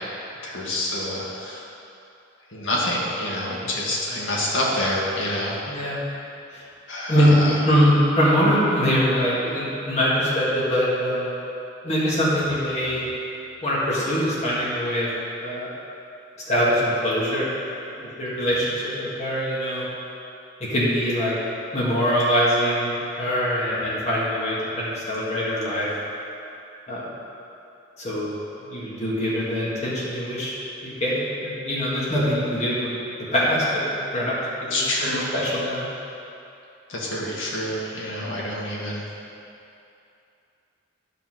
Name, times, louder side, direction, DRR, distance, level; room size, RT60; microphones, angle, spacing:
voice 1, 0.4-1.6 2.5-5.5 6.9-7.6 34.7-35.3 36.9-39.0, left 1 dB, 75° left, -4 dB, 1.7 m, -27 dB
voice 2, 7.1-11.3 11.8-13.0 13.6-15.1 15.4-15.7 16.5-17.5 18.0-19.9 20.7-21.3 21.7-22.9 23.2-25.9 26.9-27.1 28.0-28.3 28.7-30.5 30.8-33.0 33.3-34.4 34.6-34.8 35.1-35.8, equal, 35° left, -7 dB, 1.8 m, -23 dB
10.0 x 4.0 x 6.4 m, 2.7 s
head